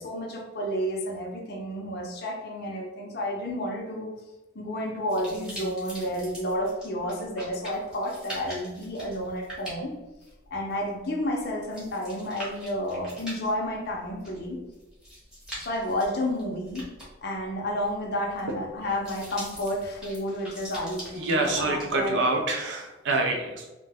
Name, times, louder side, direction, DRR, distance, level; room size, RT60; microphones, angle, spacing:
voice 1, 0.0-4.1 4.5-10.0 10.5-14.6 15.6-16.9 17.2-22.2, equal, 45° left, -1 dB, 0.5 m, -31 dB
sound 1, 5.1-22.1, equal, 5° right, 0.8 m, -43 dB
voice 2, 21.2-23.7, right 2 dB, 55° right, 2 dB, 0.5 m, -26 dB
2.6 x 2.1 x 3.3 m, 1.1 s
head